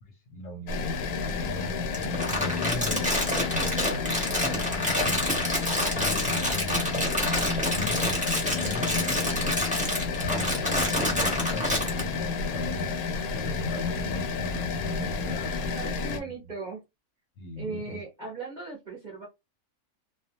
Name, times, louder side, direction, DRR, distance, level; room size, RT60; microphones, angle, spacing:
voice 1, 0.1-3.0 3.5-4.0 4.4-5.5 5.9-9.7 10.2-12.9 13.3-15.6 16.1-16.5 17.4-18.0, equal, 60° left, 0.8 m, -38 dB
sound 1, 0.7-16.2, left 4 dB, 85° left, 1.1 m, -30 dB
Crumpling crinkling, 1.9-12.0, left 1 dB, 10° right, 0.6 m, -28 dB
voice 2, 15.6-16.8 17.6-19.3, right 3 dB, 45° right, 0.6 m, -38 dB
2.3 x 2.2 x 2.8 m
omnidirectional pair, 1.5 m